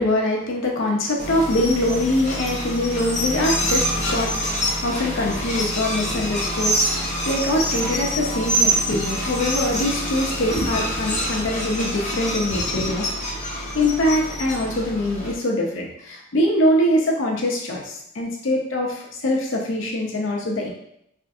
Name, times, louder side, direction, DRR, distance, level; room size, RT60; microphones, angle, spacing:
voice 1, 0.0-4.3 4.8-13.0 13.7-20.7, left 1 dB, 75° left, 0 dB, 0.6 m, -23 dB
sound 1, 1.2-15.3, equal, 35° left, 0.7 m, -26 dB
3.5 x 2.4 x 2.6 m, 0.76 s
head